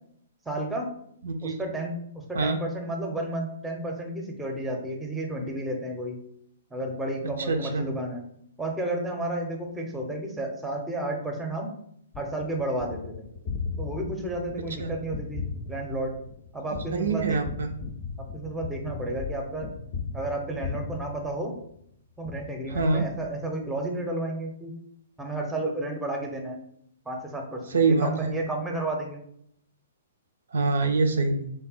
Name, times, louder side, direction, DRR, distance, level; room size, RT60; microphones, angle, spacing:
voice 1, 0.5-0.9 1.4-2.0 2.3-6.2 6.7-8.2 8.6-11.7 12.2-13.3 13.8-16.1 16.5-17.4 18.3-19.7 20.1-21.5 22.2-24.7 25.2-26.6 27.1-29.2, right 1 dB, 5° right, 1 dB, 0.6 m, -32 dB
voice 2, 1.2-1.6 2.3-2.6 7.2-7.9 14.8-14.9 16.7-17.7 22.7-23.0 27.7-28.4 30.5-31.4, right 4 dB, 65° right, 5 dB, 0.4 m, -25 dB
Gunshot gunfire, 12.1-21.8 22.2-23.7, left 5 dB, 35° left, 0.4 m, -37 dB
3.4 x 2.1 x 4.0 m, 0.70 s
figure-of-eight pair, 115°, 0 cm